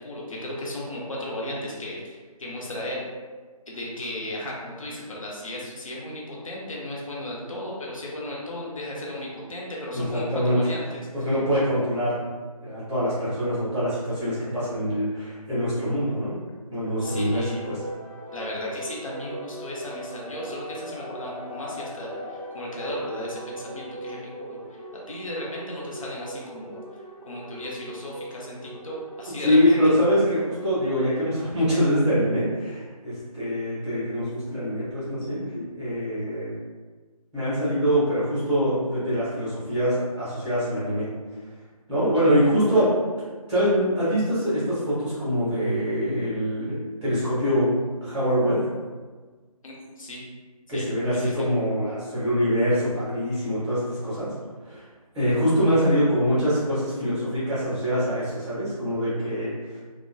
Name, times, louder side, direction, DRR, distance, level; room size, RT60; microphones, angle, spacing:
voice 1, 0.0-3.0 3.7-11.3 17.0-17.6 18.3-29.9 49.6-50.2 50.7-51.5, left 1 dB, 60° left, -4 dB, 0.8 m, -35 dB
voice 2, 9.9-10.6 11.2-12.2 12.6-16.3 16.7-17.8 29.4-36.5 37.3-41.1 41.9-43.0 43.5-47.7 48.0-48.6 50.7-54.3 54.6-54.8 55.1-59.8, equal, 5° right, -12 dB, 0.8 m, -24 dB
sound 1, 17.0-31.4, equal, 35° right, 0.5 m, -39 dB
2.6 x 2.2 x 2.5 m, 1.4 s
figure-of-eight pair, 160°, 20 cm